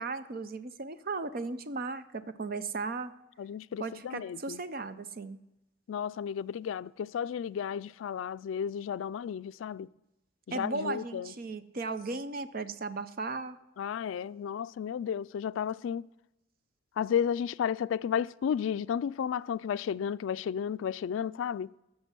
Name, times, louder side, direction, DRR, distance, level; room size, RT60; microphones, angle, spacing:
voice 1, 0.0-3.1 3.8-5.4 10.5-13.6, right 3 dB, 50° right, 0.6 m, -36 dB
voice 2, 3.4-4.6 5.9-9.9 10.5-11.3 13.8-16.1 17.0-21.7, left 8 dB, 85° left, 0.3 m, -33 dB
13.5 x 6.7 x 6.0 m
head